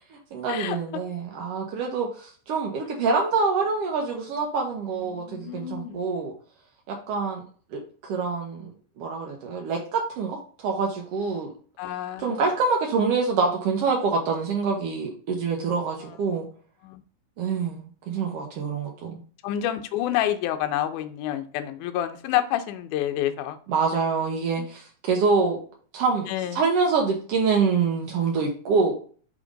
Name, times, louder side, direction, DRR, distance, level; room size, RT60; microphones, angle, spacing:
voice 1, 0.1-6.3 6.9-7.4 7.7-8.7 9.0-11.5 12.2-16.5 17.4-19.2 23.7-25.6 25.9-26.3 26.5-28.9, right 4 dB, 85° right, 0 dB, 1.3 m, -26 dB
voice 2, 5.0-6.1 11.8-12.3 16.8-17.0 19.4-23.6 24.6-24.7 26.3-26.6, left 12 dB, 75° left, 8 dB, 1.9 m, -28 dB
5.1 x 3.6 x 5.0 m, 0.44 s
omnidirectional pair, 4.0 m